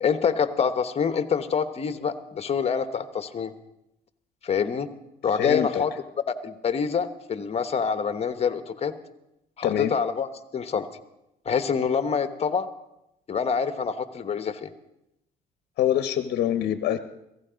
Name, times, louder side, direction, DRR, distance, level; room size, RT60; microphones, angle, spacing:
voice 1, 0.0-3.5 4.4-4.9 5.2-5.9 6.4-8.9 9.6-10.3 10.5-10.9 11.4-12.7 13.3-14.7, left 6 dB, 35° left, 10 dB, 1.2 m, -26 dB
voice 2, 5.4-5.8 9.6-9.9 15.8-17.0, left 11 dB, 65° left, 10 dB, 0.9 m, -25 dB
16.5 x 15.5 x 5.1 m, 0.87 s
cardioid pair, 110°, 17 cm